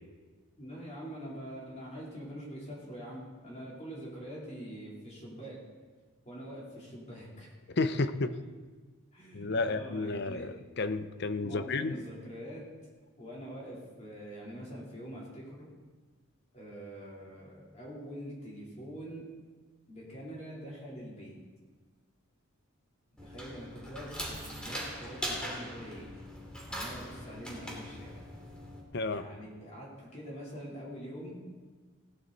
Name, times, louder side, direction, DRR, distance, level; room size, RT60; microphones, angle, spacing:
voice 1, 0.6-5.6 6.2-7.5 8.3-8.4 9.1-10.5 11.4-12.6 13.2-15.7 16.5-19.3 19.9-21.3 23.2-26.1 26.7-28.3 29.1-31.4, equal, 30° left, -5 dB, 3.5 m, -44 dB
voice 2, 7.7-8.3 9.3-12.0 28.9-29.2, left 3 dB, 50° left, 11 dB, 0.6 m, -31 dB
sound 1, 23.2-28.8, equal, 5° left, 2.5 m, -41 dB
17.5 x 11.5 x 4.1 m, 1.4 s
head